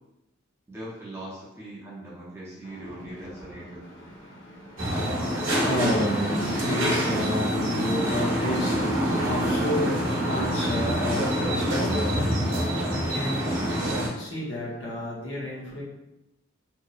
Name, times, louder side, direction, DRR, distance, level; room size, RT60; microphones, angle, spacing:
voice 1, 0.7-4.1, right 1 dB, 15° right, -7 dB, 0.5 m, -41 dB
voice 2, 2.6-15.8, left 1 dB, 55° left, -5 dB, 0.7 m, -32 dB
sound 1, 4.8-14.1, equal, 75° right, 0.7 m, -26 dB
2.7 x 2.0 x 2.3 m, 0.91 s
head